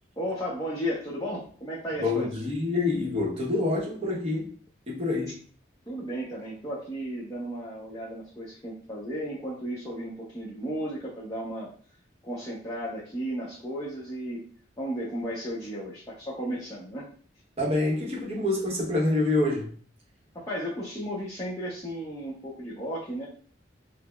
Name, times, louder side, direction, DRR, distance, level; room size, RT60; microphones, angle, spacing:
voice 1, 0.2-2.3 5.9-11.7 12.2-14.5 14.8-17.1 20.3-23.3, equal, 15° left, -7 dB, 0.7 m, -34 dB
voice 2, 2.0-4.5 4.9-5.4 17.6-19.7, left 2 dB, 30° right, -2 dB, 0.8 m, -26 dB
5.5 x 2.1 x 2.3 m, 0.43 s
head